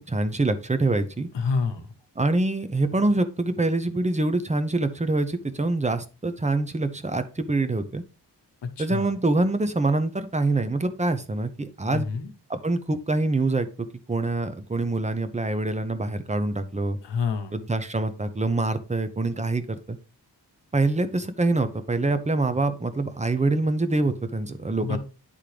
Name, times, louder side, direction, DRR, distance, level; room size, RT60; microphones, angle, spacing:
voice 1, 0.1-1.3 2.2-8.0 8.8-12.1 12.5-17.0 17.5-20.0 20.7-25.0, right 2 dB, 15° right, 11 dB, 0.6 m, -25 dB
voice 2, 1.3-1.9 8.8-9.1 11.9-12.3 17.0-17.6 24.8-25.0, left 5 dB, 80° left, 6 dB, 1.1 m, -28 dB
10.0 x 3.6 x 3.3 m, 0.33 s
wide cardioid pair, 115°, 42 cm